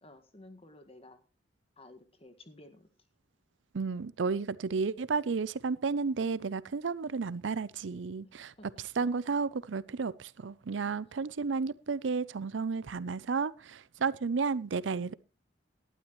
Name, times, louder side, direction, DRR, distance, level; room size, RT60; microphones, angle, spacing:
voice 1, 0.0-1.2 1.8-2.9 8.6-8.7, left 2 dB, 35° left, 1.7 m, -53 dB
voice 2, 3.7-8.5 9.0-15.1, right 4 dB, 85° right, 0.5 m, -32 dB
18.0 x 12.0 x 3.1 m
head